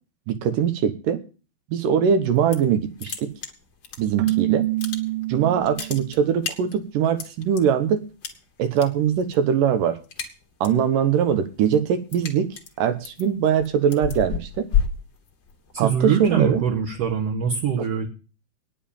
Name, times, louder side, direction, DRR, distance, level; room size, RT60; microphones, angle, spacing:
voice 1, 0.3-1.2 1.7-3.3 4.0-4.6 5.3-8.0 8.6-10.0 10.6-12.5 12.8-14.7 15.8-16.6, right 8 dB, 70° right, 10 dB, 2.5 m, -22 dB
sound 1, 2.2-2.7 3.0-4.3 4.6-5.3 5.6-7.6 8.2-8.9 9.2-9.5 9.8-10.8 11.2-15.8, left 8 dB, 45° left, 1.5 m, -30 dB
Keyboard (musical), 4.2-6.2, right 18 dB, 85° right, 2.9 m, -26 dB
voice 2, 15.7-18.1, right 7 dB, 55° right, -1 dB, 2.1 m, -23 dB
9.7 x 7.4 x 8.7 m, 0.35 s
omnidirectional pair, 4.4 m